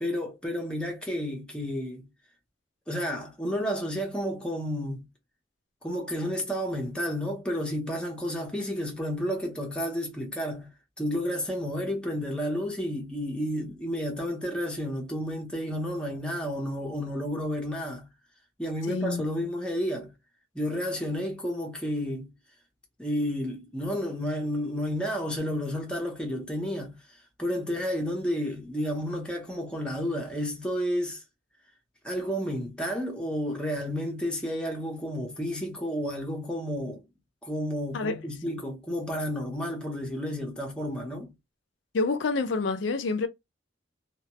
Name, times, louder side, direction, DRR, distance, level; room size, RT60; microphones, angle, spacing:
voice 1, 0.0-2.1 2.9-5.1 5.8-10.7 11.0-18.1 18.6-20.1 20.5-22.3 23.0-31.2 32.0-37.0 37.4-41.3, equal, 5° left, 0.6 m, -31 dB
voice 2, 18.9-19.2 37.9-38.1 41.9-43.3, left 3 dB, 70° left, 0.4 m, -27 dB
2.2 x 2.0 x 2.8 m
head